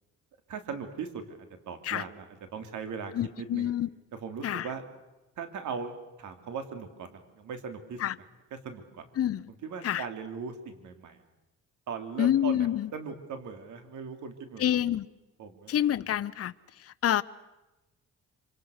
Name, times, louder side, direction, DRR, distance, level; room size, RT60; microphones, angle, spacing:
voice 1, 0.5-1.4 1.7-3.7 4.2-4.8 5.4-5.9 6.2-8.2 8.5-9.0 9.6-11.2 11.9-14.8 15.4-15.7, right 6 dB, 75° right, 7 dB, 3.3 m, -39 dB
voice 2, 3.1-3.9 4.4-4.7 8.0-8.1 9.2-9.4 9.8-10.0 12.2-12.9 14.6-15.1 15.7-16.5 16.8-17.2, left 11 dB, 50° left, 13 dB, 0.8 m, -27 dB
26.0 x 26.0 x 6.6 m, 1.0 s
cardioid pair, 90°, 30 cm